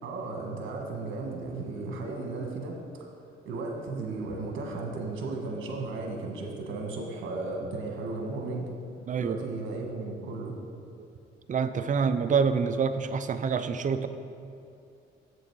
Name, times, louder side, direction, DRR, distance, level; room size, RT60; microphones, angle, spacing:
voice 1, 0.0-2.8 3.4-8.7 9.2-10.6, right 3 dB, 75° right, 1 dB, 1.5 m, -35 dB
voice 2, 11.5-14.1, right 6 dB, 40° right, 10 dB, 0.5 m, -26 dB
8.0 x 6.3 x 4.6 m, 2.5 s
cardioid pair, 90°, 20 cm